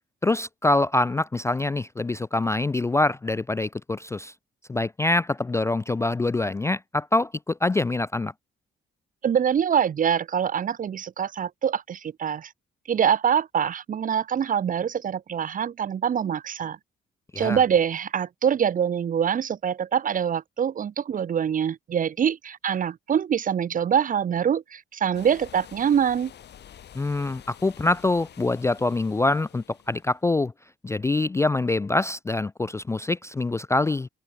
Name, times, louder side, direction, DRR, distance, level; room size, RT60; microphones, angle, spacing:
voice 1, 0.2-4.3 4.7-8.3 17.3-17.6 27.0-30.5 30.8-34.1, left 2 dB, 15° left, 0.3 m, -25 dB
voice 2, 9.2-12.5 12.9-16.8 17.4-26.3, right 8 dB, 45° right, 0.7 m, -24 dB
sound 1, 25.1-30.2, left 10 dB, 60° left, 1.4 m, -48 dB
cardioid pair, 90°, 20 cm